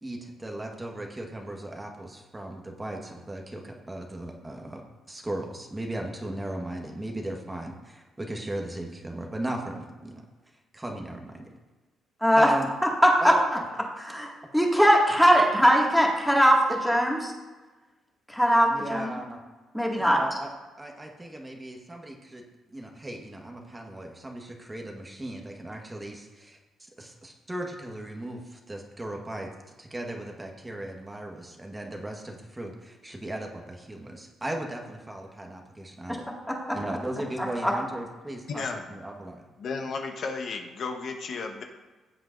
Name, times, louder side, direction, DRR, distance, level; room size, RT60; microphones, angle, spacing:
voice 1, 0.0-4.8 5.1-10.2 10.7-11.5 12.4-12.7 13.2-13.4 18.6-19.4 20.0-20.5 20.8-22.4 22.7-29.5 29.8-36.3 36.7-39.4, right 1 dB, 15° right, 1 dB, 1.3 m, -37 dB
voice 2, 12.2-12.5 13.0-13.3 14.1-17.3 18.3-19.2 19.7-20.2 36.1-36.2 36.5-36.8 37.6-37.7, equal, ahead, -2 dB, 2.0 m, -21 dB
voice 3, 38.5-38.8 39.6-41.6, left 4 dB, 60° left, 4 dB, 1.0 m, -33 dB
16.5 x 7.7 x 2.6 m, 1.2 s
cardioid pair, 90°, 0 cm